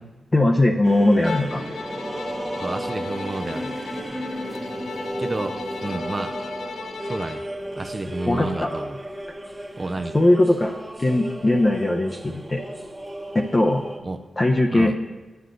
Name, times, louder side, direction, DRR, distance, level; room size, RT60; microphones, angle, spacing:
voice 1, 0.3-1.6 8.3-8.7 10.1-12.6 13.3-13.8 14.4-14.9, left 1 dB, 30° left, 1 dB, 0.6 m, -20 dB
sound 1, 0.8-14.0, equal, 10° right, 1.0 m, -34 dB
Bowed string instrument, 1.2-7.5, left 5 dB, 80° left, 0.5 m, -37 dB
voice 2, 2.6-3.7 5.2-5.6 5.8-6.3 7.1-7.4 7.8-9.0 9.8-10.2 14.0-14.2 14.7-14.9, right 2 dB, 35° right, 7 dB, 0.5 m, -30 dB
9.4 x 8.0 x 3.9 m, 1.2 s
cardioid pair, 75°, 0 cm